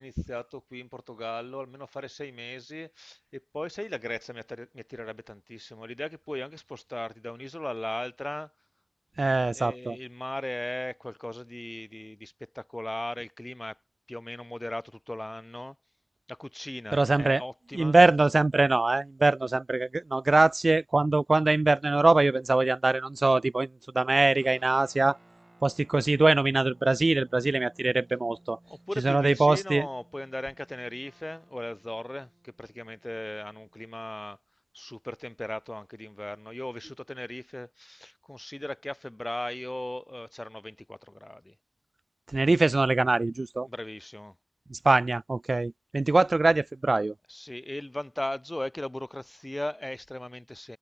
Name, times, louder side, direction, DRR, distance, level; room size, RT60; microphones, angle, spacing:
voice 1, 0.0-8.5 9.5-13.8 14.1-15.7 16.3-18.0 28.7-34.4 34.7-41.5 43.6-44.3 47.3-50.8, left 1 dB, 20° left, 1.1 m, -38 dB
voice 2, 9.2-10.0 16.9-17.4 17.7-23.7 23.9-25.2 25.6-28.6 29.0-29.9 42.3-43.7 44.7-47.1, right 2 dB, 45° right, 0.4 m, -23 dB
sound 1, 24.4-34.1, right 2 dB, 30° right, 5.8 m, -59 dB
wide cardioid pair, 60°, 0 cm